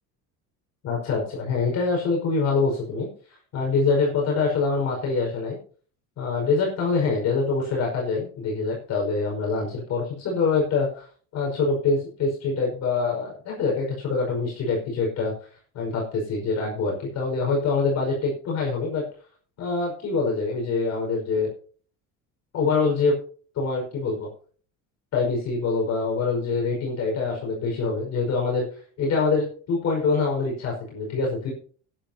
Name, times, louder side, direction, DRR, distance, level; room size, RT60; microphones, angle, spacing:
voice 1, 0.8-3.1 3.5-5.6 6.2-11.1 11.3-15.3 15.7-19.0 19.6-21.5 22.5-23.2 23.6-24.3 25.1-31.5, left 4 dB, 50° left, -2 dB, 5.3 m, -25 dB
18.5 x 10.5 x 2.8 m, 0.43 s
cardioid pair, 140°, 34 cm